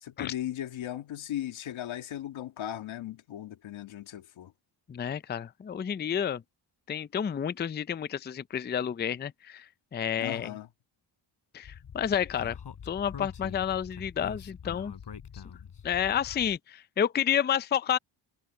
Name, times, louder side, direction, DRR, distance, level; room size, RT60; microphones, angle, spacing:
voice 1, 0.0-4.5 10.2-10.7, left 12 dB, 90° left, 1.9 m, -37 dB
voice 2, 4.9-6.4 6.9-10.5 11.5-12.6 12.9-14.9 15.8-18.0, left 9 dB, 25° left, 0.4 m, -30 dB
Speech, 11.6-16.6, left 7 dB, 60° left, 6.1 m, -44 dB
cardioid pair, 95°, 46 cm